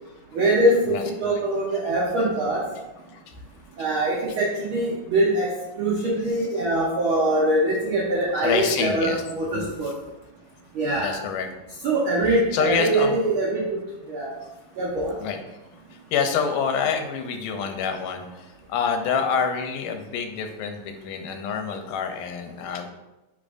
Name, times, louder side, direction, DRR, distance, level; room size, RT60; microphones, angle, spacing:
voice 1, 0.3-2.6 3.8-5.5 5.8-9.9 10.8-11.1 11.8-13.6 14.1-14.3 14.8-15.1, right 1 dB, 80° right, -4 dB, 1.1 m, -23 dB
voice 2, 0.9-1.4 3.3-3.4 8.4-9.2 9.5-9.9 11.0-11.5 12.5-13.2 15.2-15.6 15.9-22.9, left 6 dB, 90° left, 6 dB, 2.2 m, -27 dB
9.8 x 3.7 x 2.5 m, 1.0 s
omnidirectional pair, 3.7 m